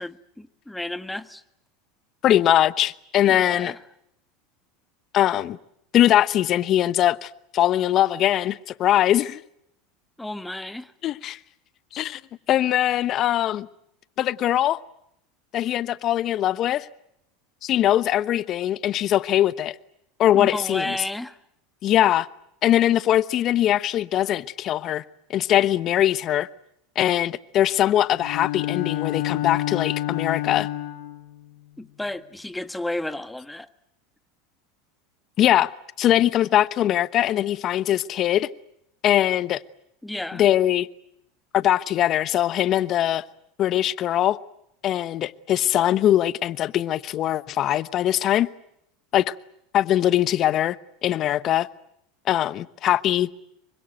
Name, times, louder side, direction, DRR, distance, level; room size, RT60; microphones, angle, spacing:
voice 1, 0.0-1.4 3.3-3.8 10.2-10.9 20.3-21.4 31.8-33.7 40.0-40.4, left 1 dB, 5° left, 1.6 m, -32 dB
voice 2, 2.2-3.7 5.1-5.6 5.9-9.4 11.0-11.4 11.9-12.2 12.5-13.7 14.2-14.8 15.5-16.9 17.6-19.7 20.2-21.0 21.8-22.3 22.6-25.0 25.3-26.5 27.0-30.7 35.4-35.7 36.0-38.5 39.0-39.6 40.3-40.9 41.5-43.2 43.6-44.4 44.8-48.5 49.1-49.3 49.7-50.8 51.0-51.7 52.3-53.3, left 12 dB, 45° left, 1.0 m, -21 dB
Bowed string instrument, 28.2-31.2, left 14 dB, 75° left, 5.6 m, -28 dB
26.5 x 24.5 x 7.9 m
hypercardioid pair, 95°, 0 cm